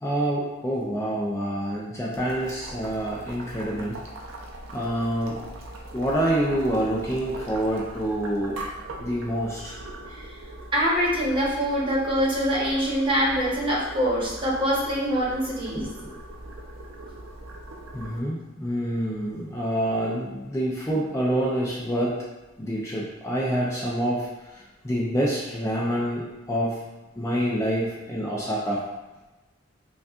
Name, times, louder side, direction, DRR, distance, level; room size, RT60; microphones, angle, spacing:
voice 1, 0.0-4.0 4.7-5.4 5.9-8.6 9.0-9.8 17.9-22.2 22.6-26.8 27.2-28.8, right 1 dB, 15° left, -5 dB, 0.5 m, -27 dB
Boiling, 2.1-18.2, right 1 dB, 80° right, 0.6 m, -41 dB
voice 2, 10.7-15.9, equal, 25° right, -6 dB, 1.0 m, -24 dB
5.3 x 2.4 x 2.4 m, 1.1 s
head